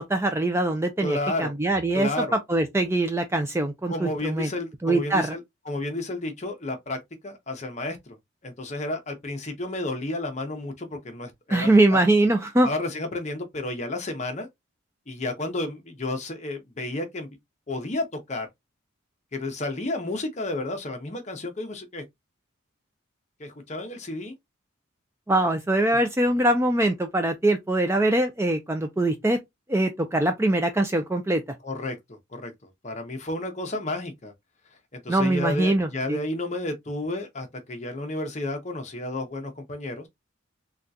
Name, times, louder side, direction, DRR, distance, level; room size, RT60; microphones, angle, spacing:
voice 1, 0.0-2.1 2.5-4.5 4.8-5.3 11.5-12.7 25.3-29.4 29.7-31.4 35.1-36.2, right 1 dB, 10° right, 0.4 m, -22 dB
voice 2, 1.0-1.5 1.9-2.4 3.9-8.0 8.4-12.0 12.6-14.5 15.1-17.3 17.7-18.5 19.3-22.0 23.4-24.3 31.6-32.5 32.8-34.3 34.9-40.1, left 2 dB, 35° left, 0.7 m, -31 dB
3.6 x 2.3 x 2.6 m
head